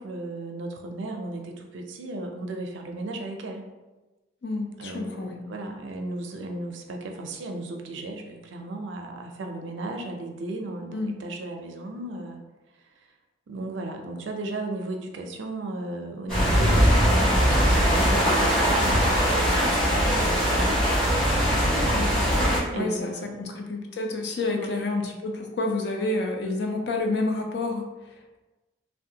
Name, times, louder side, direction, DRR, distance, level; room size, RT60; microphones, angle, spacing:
voice 1, 0.0-3.7 4.8-12.4 13.5-21.2 22.7-23.7 24.5-24.7, right 2 dB, 80° right, 3 dB, 0.4 m, -35 dB
voice 2, 4.4-5.4 10.9-11.2 21.9-22.4 22.8-28.4, left 2 dB, 60° left, 2 dB, 0.5 m, -29 dB
sound 1, 16.3-22.6, equal, 5° left, 1.2 m, -21 dB
3.3 x 2.1 x 2.8 m, 1.1 s
head